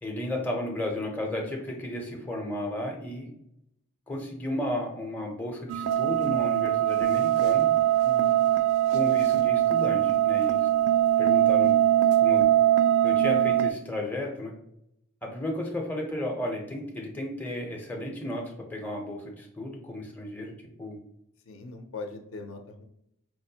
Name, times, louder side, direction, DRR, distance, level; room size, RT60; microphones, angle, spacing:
voice 1, 0.0-3.3 4.1-7.7 8.9-10.7 11.2-11.7 12.2-12.4 13.0-14.5 15.2-20.5 20.8-21.0, left 1 dB, 10° left, 0 dB, 0.5 m, -33 dB
sound 1, 5.7-13.7, right 12 dB, 75° right, 0.3 m, -22 dB
voice 2, 8.0-8.4 21.5-22.8, left 3 dB, 60° left, 5 dB, 0.4 m, -41 dB
4.5 x 2.1 x 2.7 m, 0.77 s
head